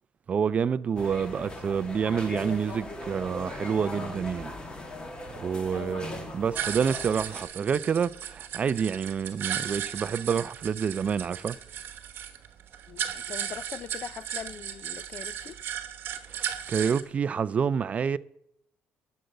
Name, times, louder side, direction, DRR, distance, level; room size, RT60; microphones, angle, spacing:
voice 1, 0.3-4.5 5.3-11.6 16.3-18.2, right 7 dB, 30° right, 0.3 m, -28 dB
sound 1, 1.0-7.4, left 1 dB, 20° left, 1.4 m, -39 dB
voice 2, 5.7-6.0 12.9-15.6, left 8 dB, 40° left, 0.3 m, -41 dB
sound 2, 6.5-17.0, right 9 dB, 55° right, 1.1 m, -36 dB
12.0 x 6.4 x 7.9 m
cardioid pair, 155°, 4 cm